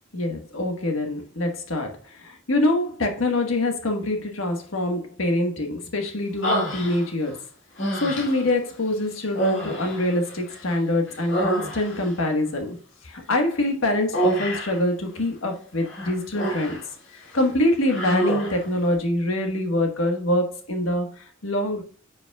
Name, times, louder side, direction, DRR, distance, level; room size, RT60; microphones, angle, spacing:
voice 1, 0.1-2.0 2.2-7.3 8.0-12.8 13.0-16.8 17.3-21.8, left 1 dB, 90° left, 3 dB, 1.4 m, -25 dB
Human voice, 6.4-7.3 7.8-8.5 9.3-10.8 11.1-12.1 14.1-14.8 15.8-16.9 17.2-17.4 17.9-18.7, right 1 dB, 65° left, 2.2 m, -27 dB
9.4 x 5.2 x 2.3 m, 0.43 s
head